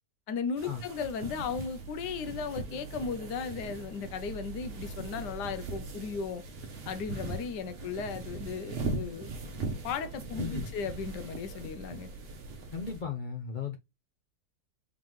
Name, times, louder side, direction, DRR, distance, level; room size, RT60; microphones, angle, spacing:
voice 1, 0.3-6.4 6.9-9.3 9.8-12.1, left 5 dB, 80° left, 1.3 m, -36 dB
sound 1, 0.6-13.0, right 3 dB, 45° right, 0.9 m, -40 dB
sound 2, 1.1-13.0, right 4 dB, 65° right, 1.3 m, -47 dB
voice 2, 10.4-10.7 12.7-13.8, left 6 dB, 65° left, 0.4 m, -36 dB
3.8 x 3.6 x 3.1 m
omnidirectional pair, 1.8 m